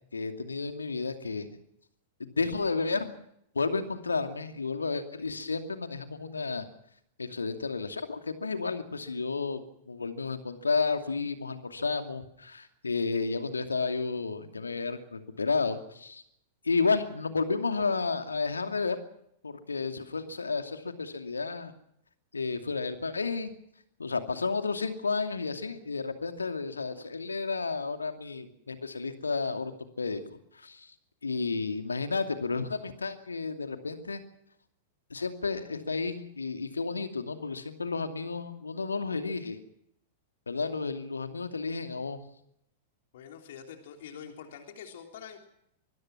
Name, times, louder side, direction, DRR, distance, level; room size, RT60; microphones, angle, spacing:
voice 1, 0.1-1.6 2.2-3.1 3.5-6.7 7.2-16.2 16.6-19.0 19.4-21.7 22.3-23.5 24.0-29.7 30.0-30.2 30.5-30.9 31.2-34.2 35.1-39.6 40.5-42.2, left 4 dB, 75° left, 7 dB, 2.5 m, -32 dB
voice 2, 43.1-45.4, left 8 dB, 55° left, 4 dB, 3.4 m, -45 dB
25.0 x 21.0 x 6.1 m, 0.74 s
figure-of-eight pair, 95°, 0 cm